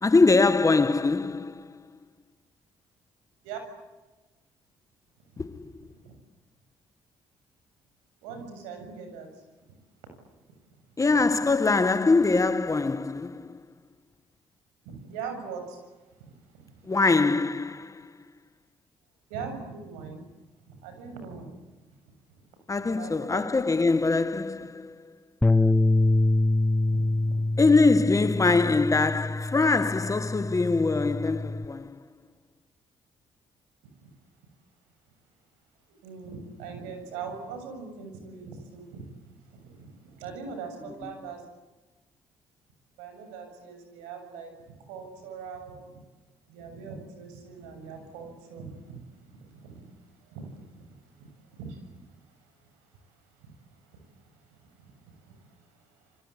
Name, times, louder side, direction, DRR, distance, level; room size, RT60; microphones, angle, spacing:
voice 1, 0.0-1.8 5.4-5.9 11.0-13.6 16.8-18.2 22.7-25.2 27.6-32.0 41.0-41.1, left 3 dB, 25° left, 1.6 m, -23 dB
voice 2, 8.2-9.4 11.1-11.2 14.9-15.8 16.2-16.9 19.3-20.2 20.7-21.6 21.9-22.0 22.9-23.4 26.9-27.4 36.0-39.1 39.4-41.4 43.0-45.9 46.5-52.4 52.7-55.9, right 5 dB, 85° right, 7.4 m, -42 dB
Bass guitar, 25.4-31.7, left 2 dB, 10° left, 1.5 m, -25 dB
28.5 x 24.5 x 8.6 m
hypercardioid pair, 55°, 12 cm